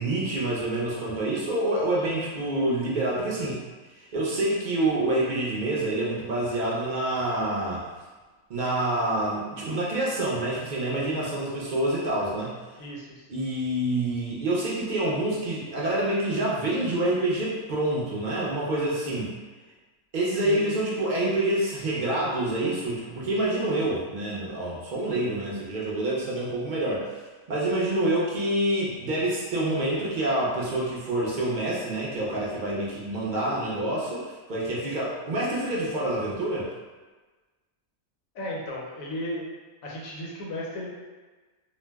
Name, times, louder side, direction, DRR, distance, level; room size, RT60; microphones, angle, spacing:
voice 1, 0.0-3.6 4.0-7.8 8.5-12.5 13.3-19.3 20.1-27.2 27.5-36.7, right 1 dB, 55° right, -5 dB, 0.5 m, -27 dB
voice 2, 12.8-13.2 20.4-20.8 38.3-39.4 39.8-40.9, equal, 80° left, -3 dB, 1.1 m, -35 dB
2.5 x 2.0 x 3.3 m, 1.3 s
omnidirectional pair, 1.4 m